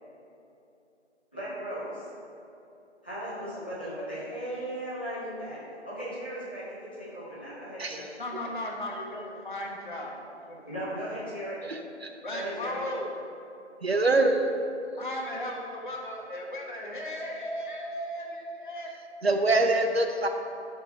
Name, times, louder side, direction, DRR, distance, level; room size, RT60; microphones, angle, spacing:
voice 1, 1.3-2.1 3.0-8.1 10.7-11.6 12.3-12.8, equal, 10° left, -12 dB, 0.9 m, -37 dB
voice 2, 8.2-10.2 10.4-11.3 12.2-13.1 15.0-18.9, left 1 dB, 45° left, -1 dB, 1.4 m, -36 dB
voice 3, 11.7-12.1 13.8-14.5 19.2-20.3, right 2 dB, 60° right, 5 dB, 0.8 m, -24 dB
11.0 x 5.9 x 4.3 m, 2.8 s
figure-of-eight pair, 165°, 35 cm